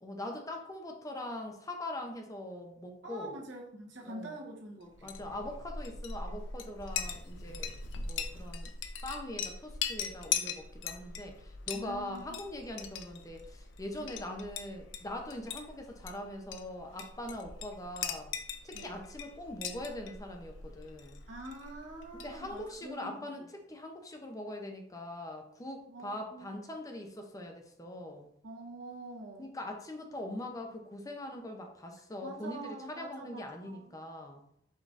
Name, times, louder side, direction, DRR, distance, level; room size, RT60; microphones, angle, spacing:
voice 1, 0.0-3.4 4.1-4.4 5.0-8.7 9.0-18.3 18.6-21.2 22.1-28.3 29.4-34.4, left 1 dB, 20° left, 3 dB, 0.5 m, -42 dB
voice 2, 3.0-5.1 11.7-12.4 14.0-14.2 18.7-19.0 21.3-23.1 25.9-26.5 28.4-29.5 32.2-33.8, right 1 dB, 75° right, -1 dB, 1.1 m, -45 dB
Chink clink, 4.9-22.7, left 6 dB, 75° left, 0.5 m, -41 dB
5.1 x 3.8 x 2.5 m, 0.70 s
head